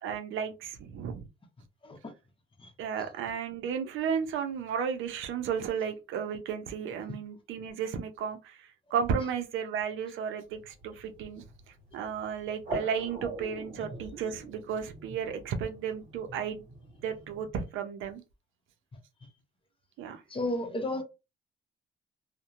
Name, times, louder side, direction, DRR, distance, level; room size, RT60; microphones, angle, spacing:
voice 1, 0.0-1.3 2.8-11.5 11.9-16.6 17.0-18.2 20.0-20.2, right 7 dB, 85° right, 0.5 m, -33 dB
sound 1, 10.5-17.5, right 2 dB, 40° right, 1.4 m, -44 dB
voice 2, 20.3-21.0, left 1 dB, 25° left, 0.7 m, -32 dB
2.7 x 2.1 x 2.4 m
cardioid pair, 90°, 20 cm